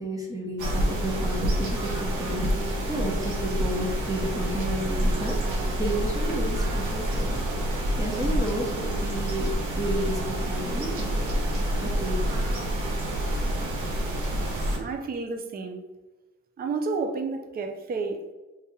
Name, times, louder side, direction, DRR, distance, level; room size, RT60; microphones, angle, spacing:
voice 1, 0.0-7.4 8.0-11.3 11.8-12.5, right 1 dB, 10° right, -2 dB, 1.0 m, -32 dB
sound 1, 0.6-14.8, right 1 dB, 80° right, 1.0 m, -27 dB
voice 2, 14.8-15.8 16.6-18.3, right 4 dB, 30° right, 5 dB, 0.5 m, -31 dB
3.0 x 2.9 x 3.6 m, 1.1 s
cardioid pair, 90°, 30 cm